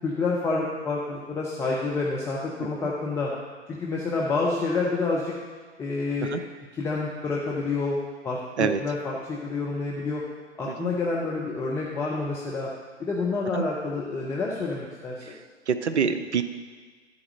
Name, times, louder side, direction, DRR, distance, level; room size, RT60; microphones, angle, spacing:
voice 1, 0.0-3.3 3.7-5.3 5.8-6.3 6.7-8.0 8.2-10.2 10.6-12.7 13.0-15.4, left 3 dB, 5° left, -4 dB, 0.5 m, -28 dB
voice 2, 15.7-16.4, right 6 dB, 70° right, 10 dB, 0.7 m, -26 dB
12.0 x 4.8 x 6.5 m, 1.5 s
figure-of-eight pair, 115°, 36 cm